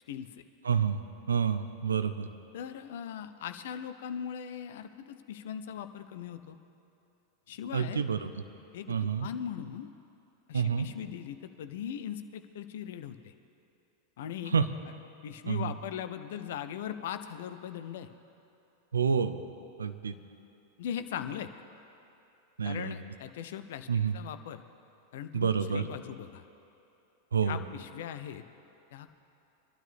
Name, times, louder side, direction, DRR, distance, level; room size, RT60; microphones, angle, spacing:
voice 1, 0.1-0.4 2.5-6.6 7.5-8.0 8.7-9.9 10.5-13.3 14.2-14.6 15.2-18.1 20.8-21.5 22.6-23.9 24.1-24.6 25.1-26.4 27.5-28.4 28.9-29.1, left 9 dB, 55° left, 10 dB, 0.7 m, -39 dB
voice 2, 0.6-1.0 1.3-2.3 7.7-8.3 8.9-9.3 10.5-10.9 14.5-14.7 15.5-15.7 18.9-19.4 19.8-20.1 22.6-23.0 23.9-24.2 25.3-25.8 27.3-27.6, right 6 dB, 70° right, 10 dB, 0.7 m, -28 dB
24.0 x 12.0 x 3.4 m, 2.8 s
figure-of-eight pair, 90°, 0 cm